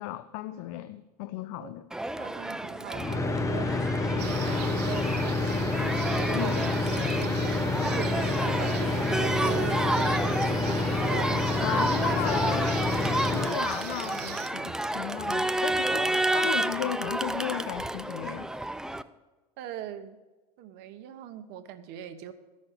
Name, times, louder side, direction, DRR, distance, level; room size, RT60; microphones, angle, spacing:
voice 1, 0.0-1.9 6.3-6.7 11.6-12.9 13.3-18.5, left 14 dB, 60° left, 13 dB, 0.5 m, -35 dB
Crowd, 1.9-19.0, right 1 dB, 5° right, 0.4 m, -31 dB
voice 2, 2.2-11.6 19.6-20.2 20.6-22.3, right 11 dB, 55° right, 10 dB, 1.1 m, -40 dB
sound 1, 2.9-13.6, left 3 dB, 15° left, 0.8 m, -28 dB
sound 2, 4.2-14.5, right 11 dB, 80° right, 0.7 m, -41 dB
14.0 x 6.3 x 6.9 m, 1.2 s
hypercardioid pair, 95°, 20 cm